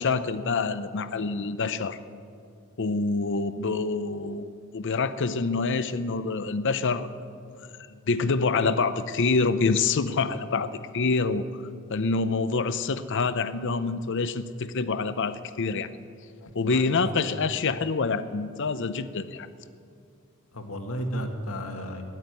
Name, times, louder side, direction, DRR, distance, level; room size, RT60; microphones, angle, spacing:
voice 1, 0.0-2.0 2.8-7.1 7.5-7.7 8.1-11.6 11.9-15.9 16.5-19.5, left 4 dB, 60° left, 13 dB, 0.7 m, -26 dB
voice 2, 16.4-17.2 20.5-22.0, equal, 80° left, 5 dB, 1.7 m, -34 dB
13.5 x 11.0 x 9.5 m, 2.3 s
head